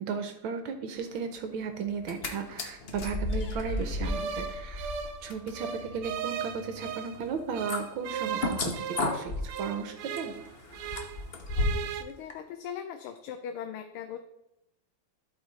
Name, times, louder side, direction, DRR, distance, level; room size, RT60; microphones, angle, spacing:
voice 1, 0.0-4.9 5.2-10.3, right 6 dB, 75° right, 7 dB, 1.6 m, -35 dB
sound 1, 1.9-2.3 2.6-11.9 12.3-12.4, left 2 dB, 50° left, 0.7 m, -34 dB
sound 2, 4.0-7.2 7.5-11.2 11.5-12.0, right 8 dB, 90° right, 1.6 m, -37 dB
voice 2, 11.6-14.2, left 8 dB, 80° left, 6 dB, 1.5 m, -40 dB
12.0 x 4.9 x 4.0 m, 0.88 s
omnidirectional pair, 2.4 m